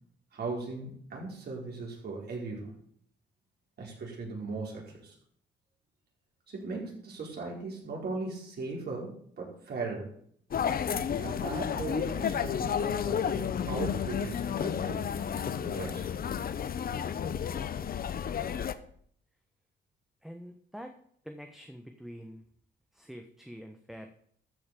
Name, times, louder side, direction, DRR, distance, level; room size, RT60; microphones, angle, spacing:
voice 1, 0.3-2.7 3.8-5.1 6.5-10.1 11.2-15.1 15.6-16.2, right 3 dB, 55° right, -2 dB, 4.9 m, -38 dB
sound 1, 10.5-18.7, left 8 dB, 50° left, 0.9 m, -31 dB
voice 2, 20.2-21.0 21.2-22.4 22.9-24.1, equal, ahead, 5 dB, 1.2 m, -45 dB
13.5 x 5.5 x 6.8 m, 0.62 s
cardioid pair, 90°, 20 cm